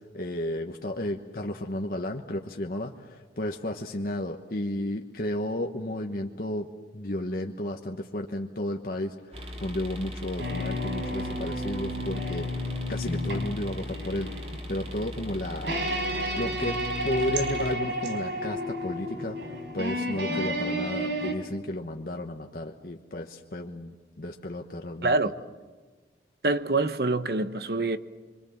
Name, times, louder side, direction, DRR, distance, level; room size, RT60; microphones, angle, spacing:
voice 1, 0.0-6.7 6.9-14.3 14.7-15.8 16.3-16.8 17.0-19.4 19.7-25.2, left 1 dB, 55° left, 1.2 m, -33 dB
sound 1, 9.3-17.7, equal, 35° right, 2.4 m, -39 dB
sound 2, 10.4-21.3, equal, 90° right, 3.9 m, -32 dB
voice 2, 26.4-28.0, right 2 dB, 60° right, 1.0 m, -25 dB
25.5 x 25.5 x 7.3 m
head